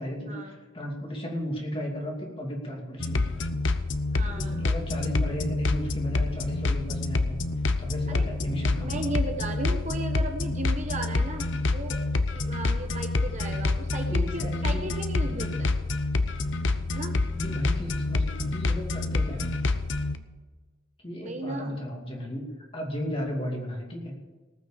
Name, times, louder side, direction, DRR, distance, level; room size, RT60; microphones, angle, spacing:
voice 1, 0.0-3.5 4.3-7.4 7.8-9.1 14.1-15.7 17.3-19.7 21.0-24.1, equal, 25° left, 0 dB, 2.6 m, -35 dB
sound 1, 3.0-20.2, left 3 dB, 60° left, 0.8 m, -27 dB
voice 2, 4.1-4.6 8.1-8.3 8.8-15.7 16.9-17.1 21.2-21.7, right 2 dB, 35° right, 3 dB, 1.3 m, -35 dB
19.0 x 6.3 x 7.2 m, 1.3 s
head